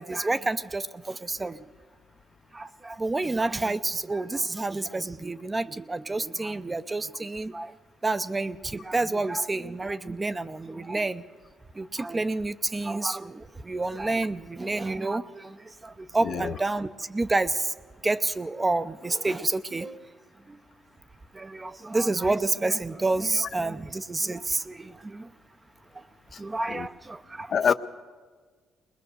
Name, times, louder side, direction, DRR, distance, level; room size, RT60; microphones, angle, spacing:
voice 1, 0.0-1.6 2.5-7.7 8.0-11.2 11.8-15.6 15.8-17.7 18.0-20.1 21.3-25.3 26.4-27.7, right 2 dB, 20° right, 13 dB, 0.6 m, -29 dB
voice 2, 16.2-16.5 26.7-26.9 27.5-27.7, left 7 dB, 55° left, 11 dB, 0.7 m, -25 dB
21.0 x 20.5 x 6.7 m, 1.5 s
cardioid pair, 90°, 0 cm